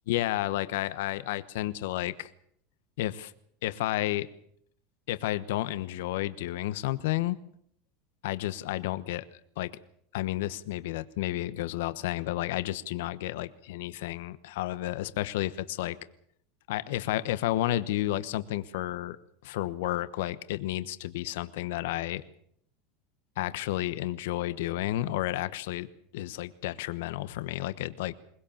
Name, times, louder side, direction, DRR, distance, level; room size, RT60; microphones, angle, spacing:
voice 1, 0.1-2.3 3.0-3.3 3.6-4.3 5.1-7.4 8.2-9.2 9.6-9.7 10.1-16.0 16.7-19.2 19.4-22.2 23.4-25.9 26.1-28.1, left 15 dB, 80° left, 13 dB, 1.1 m, -31 dB
22.0 x 20.5 x 7.2 m, 0.67 s
supercardioid pair, 125°, 0 cm